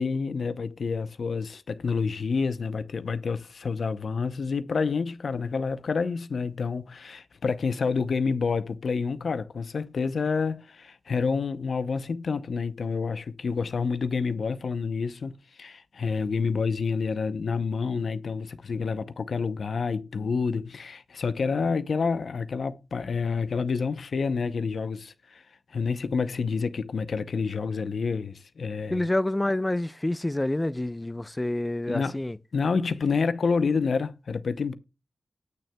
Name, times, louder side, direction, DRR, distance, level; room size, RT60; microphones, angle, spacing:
voice 1, 0.0-25.4 25.7-29.1 31.9-32.2 32.5-34.7, left 5 dB, 80° left, 0.7 m, -28 dB
voice 2, 28.9-32.4, left 1 dB, 25° left, 0.6 m, -27 dB
18.5 x 6.4 x 2.3 m
cardioid pair, 45°, 0 cm